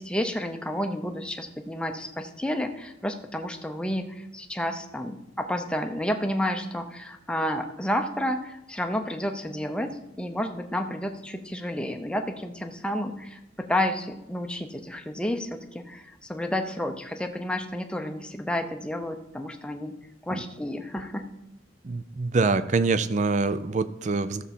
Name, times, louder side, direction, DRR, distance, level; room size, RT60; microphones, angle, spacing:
voice 1, 0.0-19.9 20.3-21.2, left 1 dB, 5° left, 5 dB, 0.6 m, -31 dB
voice 2, 21.8-24.4, right 3 dB, 35° right, 13 dB, 0.4 m, -25 dB
13.5 x 6.8 x 4.3 m, 0.90 s
head